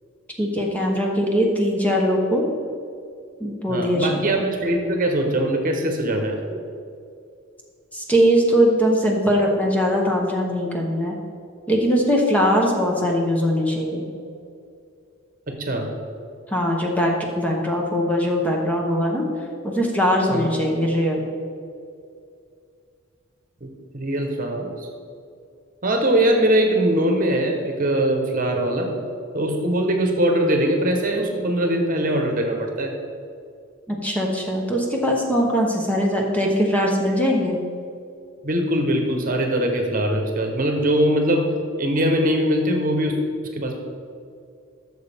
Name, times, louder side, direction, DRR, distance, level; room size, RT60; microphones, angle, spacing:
voice 1, 0.4-2.4 3.4-4.4 7.9-11.2 11.7-14.0 16.5-19.3 19.6-21.3 33.9-37.6, equal, 5° left, -1 dB, 1.0 m, -21 dB
voice 2, 3.7-6.4 15.5-15.9 20.3-20.5 23.6-23.7 23.9-24.9 25.8-28.9 29.3-32.9 38.4-41.5 41.8-43.1 43.4-43.8, right 1 dB, 45° right, 3 dB, 1.1 m, -21 dB
12.5 x 6.8 x 3.6 m, 2.4 s
head